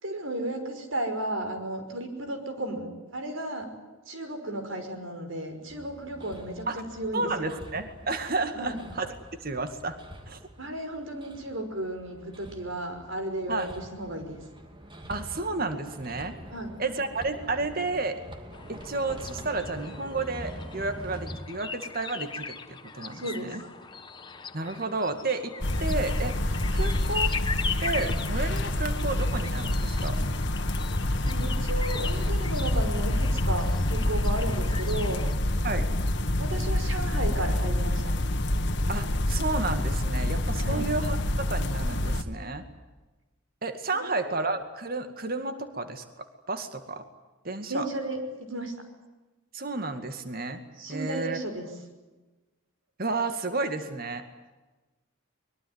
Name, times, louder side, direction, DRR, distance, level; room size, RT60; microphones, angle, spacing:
voice 1, 0.0-3.7 4.1-7.5 8.5-8.8 10.6-14.4 16.5-16.7 23.1-23.5 31.2-35.2 36.4-38.1 40.6-40.9 44.0-44.3 47.7-48.7 50.8-51.7, right 1 dB, 70° right, 6 dB, 5.8 m, -34 dB
Hammer, 5.7-21.4, equal, 25° right, 2.5 m, -45 dB
voice 2, 7.1-9.1 9.4-10.0 10.3-10.4 13.5-13.7 15.1-16.4 16.8-18.2 18.7-23.6 24.5-25.5 25.8-26.4 26.7-27.3 27.8-30.3 35.6-35.9 38.9-41.2 41.5-42.6 43.6-47.0 47.4-47.9 49.5-50.6 50.9-51.4 53.0-54.2, right 3 dB, 45° right, 8 dB, 2.1 m, -31 dB
sound 1, 18.5-35.4, left 5 dB, 20° left, 1.3 m, -39 dB
sound 2, 25.6-42.2, left 1 dB, 55° left, 1.7 m, -27 dB
24.0 x 22.5 x 9.6 m, 1.1 s
head